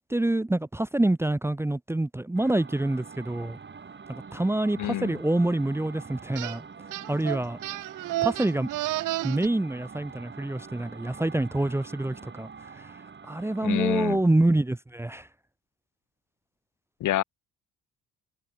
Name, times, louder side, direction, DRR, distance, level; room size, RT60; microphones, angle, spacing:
voice 1, 0.0-3.6 4.3-6.6 7.1-7.6 8.2-8.7 9.2-12.5 13.3-15.3, right 1 dB, 10° right, 0.8 m, -26 dB
sound 1, 2.4-13.8, right 5 dB, 35° right, 8.0 m, -45 dB
voice 2, 4.8-5.2 13.6-14.2 17.0-17.2, left 13 dB, 80° left, 2.3 m, -27 dB
sound 2, 6.4-6.6 6.9-9.5, right 16 dB, 85° right, 1.7 m, -31 dB
cardioid pair, 90°, 30 cm